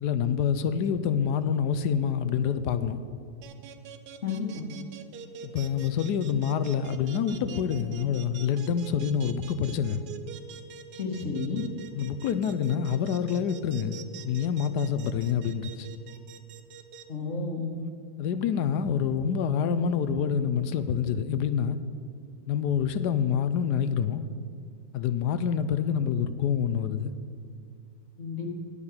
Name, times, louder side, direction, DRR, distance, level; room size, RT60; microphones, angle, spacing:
voice 1, 0.0-3.0 5.4-10.0 11.9-15.9 17.8-17.9 18.2-21.8 22.5-24.2 24.9-27.1, left 7 dB, 75° left, 12 dB, 1.2 m, -27 dB
sound 1, 3.4-17.0, right 7 dB, 70° right, 1.3 m, -44 dB
voice 2, 4.2-4.7 10.9-11.7 17.1-17.7 28.2-28.5, left 4 dB, 45° left, 2 dB, 1.6 m, -31 dB
9.9 x 8.6 x 7.1 m, 2.2 s
omnidirectional pair, 1.9 m